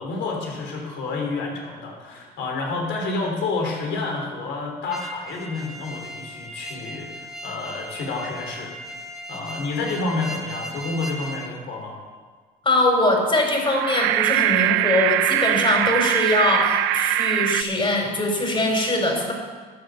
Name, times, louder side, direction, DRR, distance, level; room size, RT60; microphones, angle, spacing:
voice 1, 0.0-8.7 9.3-12.0, left 3 dB, 70° left, 0 dB, 3.4 m, -29 dB
sound 1, 4.9-11.5, right 1 dB, ahead, 1.8 m, -37 dB
voice 2, 12.6-19.3, left 2 dB, 25° left, 1 dB, 4.7 m, -22 dB
sound 2, 13.6-17.6, right 16 dB, 80° right, 0.4 m, -22 dB
12.0 x 7.7 x 7.0 m, 1.5 s
hypercardioid pair, 60°, 19 cm